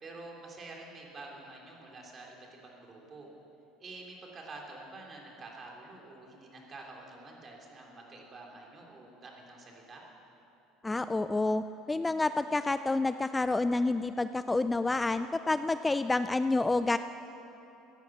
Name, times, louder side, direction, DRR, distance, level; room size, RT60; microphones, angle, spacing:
voice 1, 0.0-3.3 3.8-10.0, right 2 dB, 35° right, 0 dB, 3.4 m, -48 dB
voice 2, 10.8-17.0, left 2 dB, 15° left, 12 dB, 0.4 m, -29 dB
16.0 x 10.5 x 7.5 m, 3.0 s
supercardioid pair, 95°, 0 cm